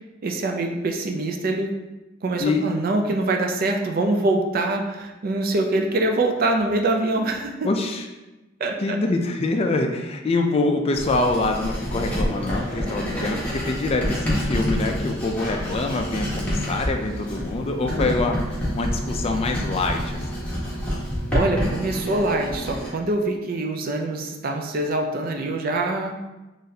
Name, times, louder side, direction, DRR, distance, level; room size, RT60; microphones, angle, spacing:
voice 1, 0.2-1.7 2.2-7.7 8.6-9.0 21.3-26.2, right 2 dB, 45° right, 3 dB, 0.4 m, -24 dB
voice 2, 7.6-8.1 8.8-18.4 18.7-20.5, left 2 dB, 30° left, 4 dB, 0.3 m, -25 dB
Writing, 10.9-22.9, equal, 5° left, 1.1 m, -28 dB
4.0 x 3.1 x 2.7 m, 1.1 s
head